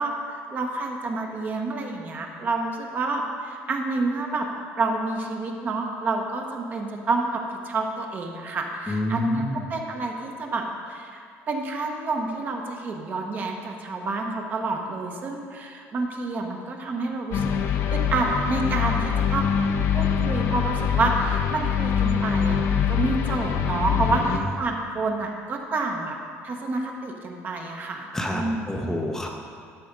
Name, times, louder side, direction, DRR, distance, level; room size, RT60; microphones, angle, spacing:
voice 1, 0.0-4.5 4.8-26.2 26.4-28.9, right 3 dB, 35° right, 2 dB, 1.0 m, -29 dB
voice 2, 8.9-9.7 23.9-24.5 28.1-29.3, equal, 10° left, 1 dB, 0.6 m, -29 dB
sound 1, 17.3-24.4, left 8 dB, 60° left, 0.7 m, -24 dB
12.5 x 4.3 x 5.2 m, 2.2 s
cardioid pair, 140°, 5 cm